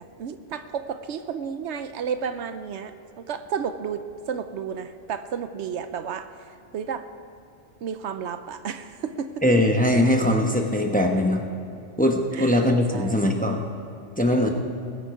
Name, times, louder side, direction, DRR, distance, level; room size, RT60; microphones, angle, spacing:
voice 1, 0.0-6.3 6.7-7.1 7.8-9.4 12.3-12.6 12.9-13.3, right 7 dB, 75° right, 10 dB, 0.9 m, -32 dB
voice 2, 9.4-11.4 12.0-13.6 14.2-14.5, left 1 dB, 10° left, 3 dB, 0.9 m, -21 dB
20.5 x 9.0 x 4.9 m, 2.6 s
omnidirectional pair, 1.2 m